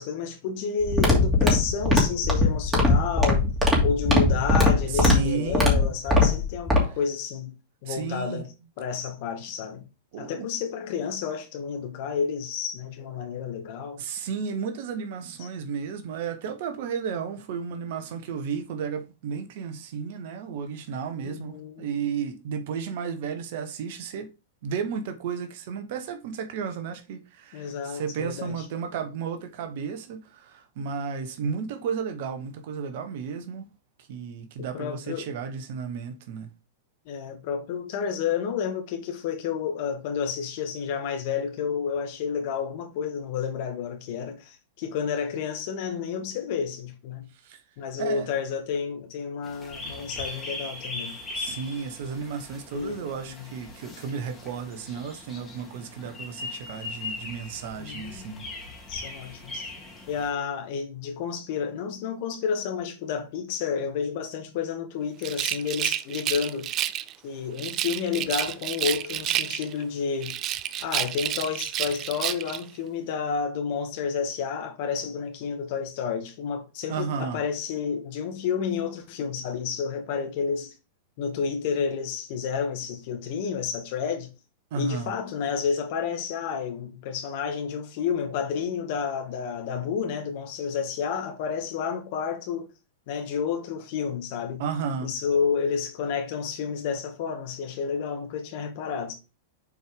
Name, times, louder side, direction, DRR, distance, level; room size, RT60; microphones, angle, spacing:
voice 1, 0.0-3.5 3.8-7.5 7.8-8.5 8.8-9.8 10.2-14.0 15.4-15.5 21.2-21.9 27.5-28.7 34.6-35.3 37.1-47.3 47.8-51.2 52.7-53.5 57.8-58.3 58.9-59.7 60.1-66.7 67.2-70.4 70.8-80.7 81.2-84.3 84.7-92.7 93.1-94.6 95.0-99.1, left 6 dB, 50° left, 1.8 m, -30 dB
sound 1, 0.8-6.8, left 2 dB, 15° right, 2.8 m, -20 dB
voice 2, 4.9-5.9 7.9-8.5 10.1-10.5 14.0-24.3 24.6-33.7 34.1-36.5 47.4-47.6 48.0-48.3 51.3-58.5 76.9-77.4 84.7-85.1 94.6-95.1, right 6 dB, 55° right, 1.2 m, -33 dB
sound 2, 49.4-60.3, left 3 dB, 15° left, 2.4 m, -39 dB
Rattle, 65.2-67.1 67.6-69.8 70.2-72.6, right 12 dB, 35° right, 0.5 m, -30 dB
7.0 x 4.5 x 3.6 m
figure-of-eight pair, 95°, 0 cm